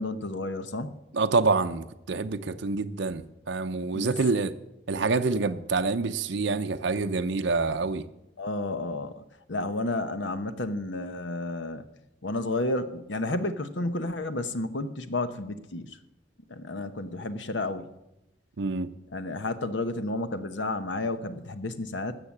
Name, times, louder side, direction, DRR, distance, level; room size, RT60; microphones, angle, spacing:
voice 1, 0.0-1.0 3.9-4.2 8.4-9.2 9.5-11.9 12.2-16.0 16.5-17.9 19.1-22.2, left 2 dB, 90° left, 10 dB, 1.0 m, -31 dB
voice 2, 1.1-4.5 4.9-8.0 18.6-18.9, right 4 dB, 85° right, 8 dB, 0.6 m, -27 dB
13.0 x 7.0 x 8.5 m, 0.89 s
head